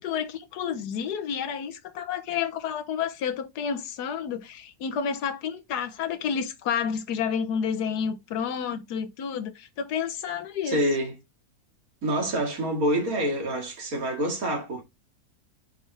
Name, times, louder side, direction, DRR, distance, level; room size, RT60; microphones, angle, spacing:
voice 1, 0.0-10.8, left 7 dB, 80° left, 1.4 m, -30 dB
voice 2, 10.6-11.2 12.0-14.8, right 1 dB, 60° right, 2.5 m, -26 dB
6.4 x 5.1 x 3.3 m
omnidirectional pair, 1.7 m